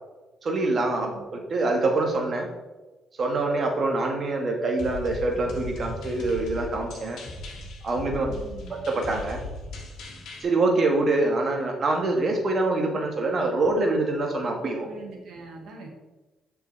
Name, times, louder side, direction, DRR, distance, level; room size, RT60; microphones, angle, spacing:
voice 1, 0.4-2.5 3.2-7.2 7.8-8.3 8.9-9.4 10.4-14.9, right 2 dB, 55° right, 2 dB, 1.7 m, -25 dB
sound 1, 4.8-10.4, left 2 dB, 75° left, 1.4 m, -38 dB
voice 2, 8.2-8.9 14.8-15.9, right 3 dB, 70° right, 0 dB, 1.9 m, -43 dB
7.0 x 5.7 x 3.4 m, 1.1 s
supercardioid pair, 55°, 0 cm